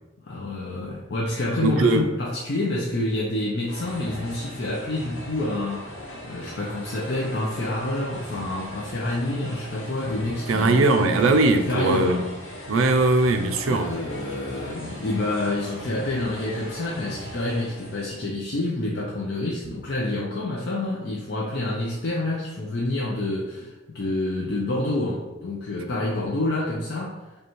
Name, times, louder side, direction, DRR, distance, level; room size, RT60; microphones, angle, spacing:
voice 1, 0.2-11.2 11.7-12.3 12.6-12.7 13.7-27.2, left 2 dB, 55° left, -4 dB, 0.5 m, -28 dB
voice 2, 1.6-2.1 10.5-12.2 12.7-13.9, right 2 dB, 90° right, 7 dB, 0.4 m, -20 dB
sound 1, 3.7-18.2, equal, 85° left, 1.0 m, -39 dB
5.1 x 2.3 x 3.0 m, 1.1 s
head